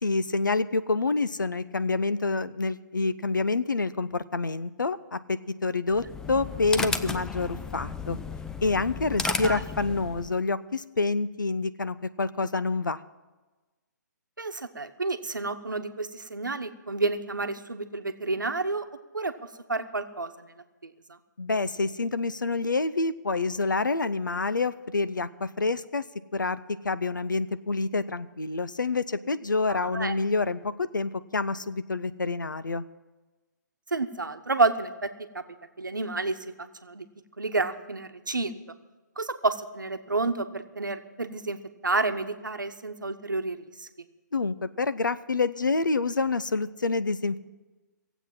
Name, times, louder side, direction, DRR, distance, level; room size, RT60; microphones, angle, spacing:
voice 1, 0.0-8.2 8.6-13.0 21.4-26.0 26.3-26.6 26.8-32.8 44.3-47.4, left 3 dB, 85° left, 14 dB, 0.7 m, -27 dB
sound 1, 5.9-10.4, left 5 dB, 5° left, 0.3 m, -34 dB
voice 2, 9.2-9.6 14.4-18.8 19.1-19.3 19.7-20.5 20.8-21.2 29.7-30.1 33.9-35.4 35.8-37.0 37.4-38.6 39.2-43.9, right 3 dB, 90° right, 8 dB, 1.0 m, -30 dB
17.0 x 8.1 x 7.4 m, 1.2 s
figure-of-eight pair, 135°, 10 cm